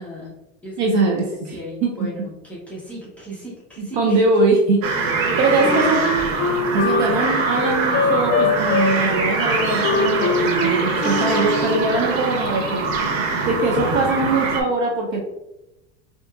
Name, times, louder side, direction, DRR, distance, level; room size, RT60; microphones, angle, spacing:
voice 1, 0.0-1.2 1.5-4.2 5.5-5.8, equal, 5° left, -7 dB, 0.6 m, -36 dB
voice 2, 0.8-1.5 1.8-1.9 3.8-4.8 5.4-6.0 6.7-12.8 13.5-15.2, right 2 dB, 45° right, 0 dB, 0.5 m, -21 dB
sound 1, 4.8-14.6, right 4 dB, 90° right, 0.8 m, -23 dB
Wind instrument woodwind instrument, 5.6-11.9, left 4 dB, 70° left, 0.6 m, -23 dB
4.3 x 2.8 x 2.3 m, 0.95 s
supercardioid pair, 155°, 38 cm